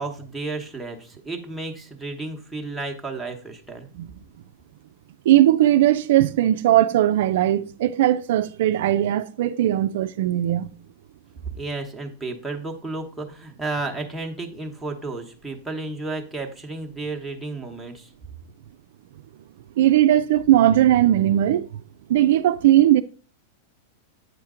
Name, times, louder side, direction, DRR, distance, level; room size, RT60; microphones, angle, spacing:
voice 1, 0.0-3.9 11.5-18.1, right 3 dB, 5° right, 1.0 m, -32 dB
voice 2, 5.3-10.7 19.8-21.7 22.1-23.0, right 13 dB, 70° right, 0.3 m, -18 dB
8.0 x 4.4 x 3.7 m
supercardioid pair, 140°, 0 cm